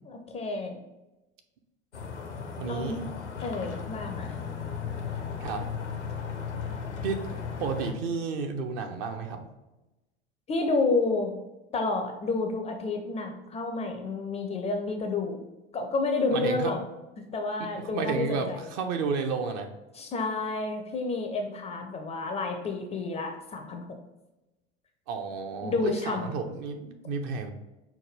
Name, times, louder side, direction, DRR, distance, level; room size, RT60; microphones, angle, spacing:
voice 1, 0.1-0.8 2.6-3.0 3.4-4.3 10.5-11.3 11.7-15.4 15.7-16.8 17.3-18.7 19.9-23.9 25.6-26.3, left 3 dB, 20° left, 4 dB, 0.4 m, -30 dB
sound 1, 1.9-7.9, left 6 dB, 85° left, 0.5 m, -36 dB
voice 2, 2.6-3.1 5.4-5.7 7.0-9.5 16.3-16.8 17.6-19.7 25.1-27.5, right 5 dB, 45° right, 5 dB, 0.6 m, -32 dB
5.7 x 2.2 x 3.2 m, 1.0 s
figure-of-eight pair, 70°, 34 cm